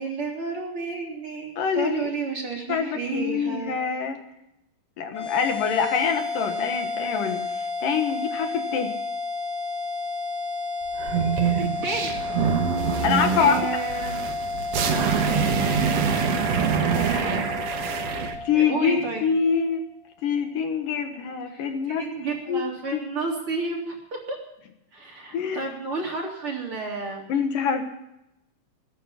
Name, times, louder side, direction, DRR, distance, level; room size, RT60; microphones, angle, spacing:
voice 1, 0.0-3.9 11.8-12.2 13.4-14.2 16.9-17.4 18.5-19.3 21.5-24.0 24.3-24.4 24.9-27.2, right 4 dB, 40° right, 0 dB, 4.0 m, -31 dB
voice 2, 1.6-2.1 2.7-4.2 5.0-8.9 13.0-13.6 18.4-19.8 20.2-22.0 22.5-22.6 22.9-23.0 25.3-25.6 27.3-27.9, left 6 dB, 70° left, 6 dB, 2.9 m, -25 dB
sound 1, 5.1-19.7, left 3 dB, 30° left, 2.5 m, -31 dB
sound 2, 10.9-18.4, right 6 dB, 55° right, 2.1 m, -25 dB
21.0 x 9.9 x 5.8 m, 0.84 s
omnidirectional pair, 4.2 m